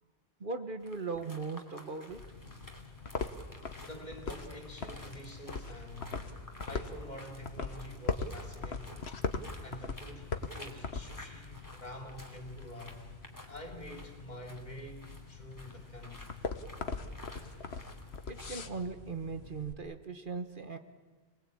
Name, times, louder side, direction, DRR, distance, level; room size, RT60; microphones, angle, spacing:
voice 1, 0.4-2.8 18.3-20.8, right 4 dB, 55° right, 1.5 m, -39 dB
sound 1, 0.8-18.7, left 1 dB, 20° left, 2.9 m, -53 dB
sound 2, 2.1-19.7, left 4 dB, 90° left, 1.5 m, -41 dB
voice 2, 3.8-6.3 6.6-9.3 9.6-13.1 13.5-16.4, equal, 45° left, 3.5 m, -47 dB
27.5 x 20.5 x 8.7 m
omnidirectional pair, 1.0 m